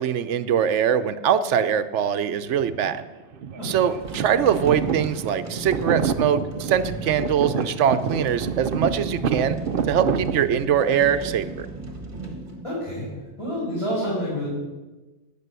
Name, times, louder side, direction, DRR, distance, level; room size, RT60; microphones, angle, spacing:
voice 1, 0.0-3.0 3.6-9.6 9.9-11.7, right 8 dB, 75° right, 12 dB, 1.0 m, -22 dB
sound 1, 2.4-3.0 3.3-10.5, right 7 dB, 55° right, 0.7 m, -28 dB
sound 2, 3.9-13.3, right 2 dB, 40° right, 1.6 m, -36 dB
voice 2, 12.6-13.1 13.4-14.5, equal, 25° left, -9 dB, 4.9 m, -28 dB
12.5 x 8.8 x 6.8 m, 1.2 s
omnidirectional pair, 1.2 m